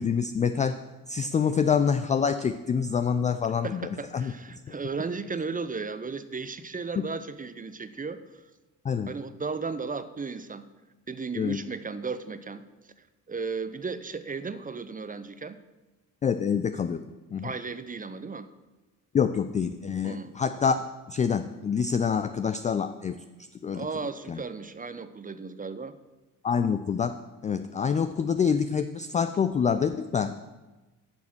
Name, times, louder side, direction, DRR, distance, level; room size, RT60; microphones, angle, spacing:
voice 1, 0.0-4.3 8.8-9.1 11.3-11.6 16.2-17.0 17.3-17.5 19.1-23.2 23.6-23.9 24.3-24.4 26.4-30.3, left 6 dB, 20° left, 10 dB, 0.3 m, -26 dB
voice 2, 3.6-8.4 9.1-10.7 11.1-12.6 13.3-15.6 17.4-18.5 20.0-20.3 23.7-26.0, right 4 dB, 20° right, 12 dB, 0.7 m, -35 dB
9.5 x 7.1 x 6.1 m, 1.1 s
figure-of-eight pair, 40°, 47 cm